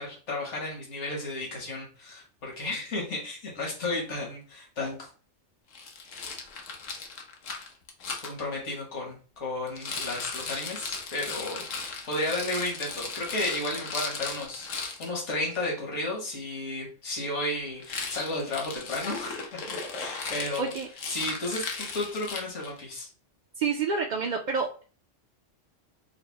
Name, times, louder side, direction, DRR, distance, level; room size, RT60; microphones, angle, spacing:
voice 1, 0.0-5.1 8.2-20.7 21.1-23.1, left 2 dB, 70° left, -2 dB, 1.7 m, -33 dB
Rattle, 5.7-8.3 9.7-15.1 17.8-22.8, left 4 dB, 90° left, 1.2 m, -37 dB
voice 2, 23.6-24.8, right 5 dB, 55° right, 1 dB, 0.5 m, -28 dB
4.8 x 2.0 x 4.5 m, 0.38 s
omnidirectional pair, 1.3 m